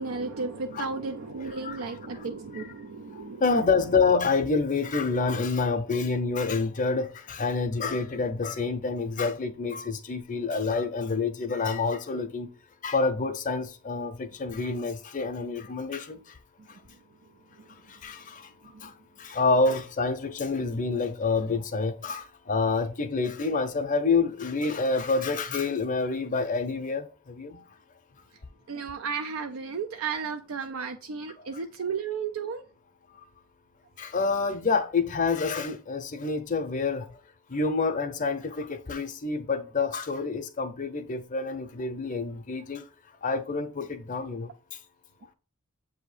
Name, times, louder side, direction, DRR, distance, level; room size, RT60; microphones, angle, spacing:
voice 1, 0.0-3.4 18.8-18.9 28.7-32.6, right 5 dB, 85° right, 0.4 m, -34 dB
voice 2, 3.4-12.5 12.8-16.2 18.0-18.4 18.8-18.9 19.2-27.6 34.0-37.1 37.5-42.8 43.2-44.5, left 4 dB, 40° left, 0.6 m, -27 dB
7.6 x 2.7 x 4.8 m
head